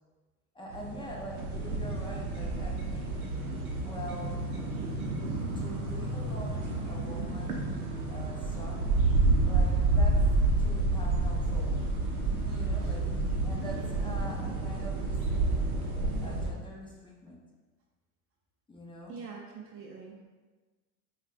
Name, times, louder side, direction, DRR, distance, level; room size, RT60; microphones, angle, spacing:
voice 1, 0.5-3.2 3.8-4.4 5.6-8.9 9.4-10.2 10.6-11.8 12.2-13.1 13.4-15.7 16.2-17.4 18.7-19.2, equal, 10° left, -3 dB, 0.7 m, -44 dB
sound 1, 0.7-16.5, right 2 dB, 90° right, 0.7 m, -29 dB
voice 2, 13.7-14.1 19.1-20.2, right 6 dB, 35° right, -1 dB, 0.5 m, -44 dB
5.0 x 2.4 x 2.5 m, 1.3 s
hypercardioid pair, 85°, 43 cm